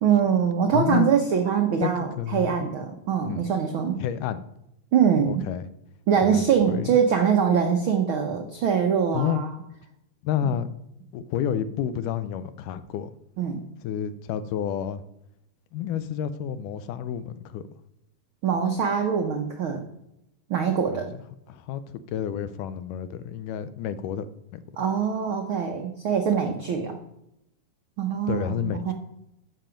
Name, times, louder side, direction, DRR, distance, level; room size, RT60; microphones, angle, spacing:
voice 1, 0.0-4.0 4.9-5.4 6.1-9.5 13.4-13.7 18.4-19.9 20.5-21.1 24.8-27.0 28.0-28.9, right 7 dB, 80° right, 4 dB, 1.1 m, -23 dB
voice 2, 0.7-1.1 1.8-2.7 3.2-3.4 4.0-4.4 5.3-5.7 6.2-7.0 9.1-9.4 10.2-10.7 11.1-13.1 13.8-15.0 15.7-17.7 20.9-21.2 21.5-24.3 24.5-24.9 28.3-28.9, left 9 dB, 80° left, 13 dB, 2.2 m, -30 dB
13.5 x 6.0 x 5.1 m, 0.82 s
omnidirectional pair, 3.7 m